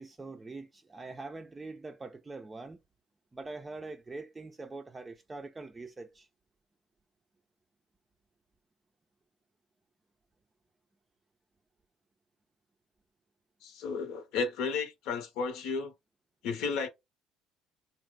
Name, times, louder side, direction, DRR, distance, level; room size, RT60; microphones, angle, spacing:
voice 1, 0.0-2.8 3.3-6.3, right 3 dB, 20° right, 0.4 m, -43 dB
voice 2, 13.6-15.9 16.4-16.9, left 5 dB, 75° left, 0.8 m, -33 dB
2.9 x 2.0 x 3.6 m
supercardioid pair, 80°, 0 cm